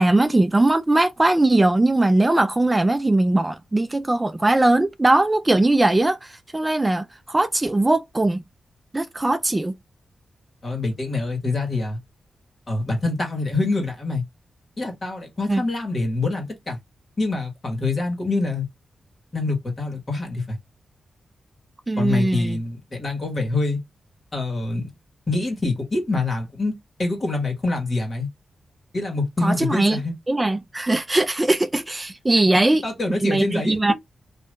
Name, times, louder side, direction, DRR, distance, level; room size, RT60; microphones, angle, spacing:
voice 1, 0.0-8.4 8.9-9.7 15.5-15.6 21.9-22.6 29.4-30.0 30.3-32.8 33.2-33.9, right 2 dB, 20° right, 0.3 m, -20 dB
voice 2, 10.6-12.0 12.7-14.2 14.8-16.8 17.2-18.7 19.3-20.6 22.0-23.8 24.3-24.8 25.3-28.3 28.9-30.1 32.5-33.8, left 2 dB, 45° left, 1.6 m, -25 dB
2.7 x 2.5 x 3.2 m
cardioid pair, 70°, 0 cm